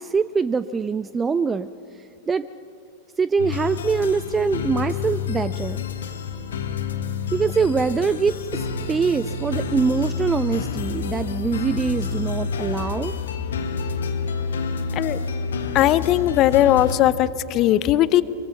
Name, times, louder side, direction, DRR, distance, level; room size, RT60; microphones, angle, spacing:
voice 1, 0.0-1.7 2.3-2.5 3.2-5.8 7.3-13.1, right 5 dB, 15° right, 15 dB, 0.4 m, -23 dB
sound 1, 3.4-17.0, left 5 dB, 65° left, 1.6 m, -28 dB
voice 2, 15.7-18.2, left 13 dB, 35° left, 17 dB, 0.7 m, -18 dB
24.5 x 23.0 x 5.7 m, 2.6 s
figure-of-eight pair, 90°, 0 cm